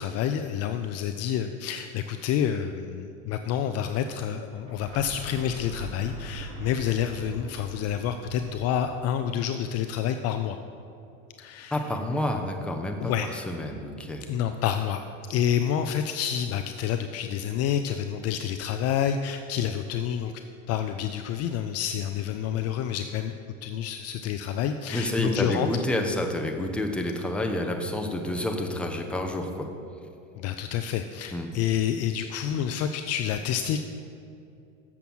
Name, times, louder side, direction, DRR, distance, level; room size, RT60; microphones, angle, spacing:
voice 1, 0.0-10.6 11.4-11.8 13.0-13.3 14.3-15.0 15.3-20.3 20.7-23.3 23.6-25.7 30.3-33.8, left 9 dB, 40° left, 8 dB, 0.4 m, -28 dB
sound 1, 4.5-10.3, right 1 dB, 60° right, 2.4 m, -42 dB
voice 2, 11.7-14.2 24.9-29.7 31.3-31.5, left 1 dB, 5° left, 2 dB, 0.8 m, -29 dB
7.2 x 6.9 x 6.1 m, 2.6 s
hypercardioid pair, 105°, 38 cm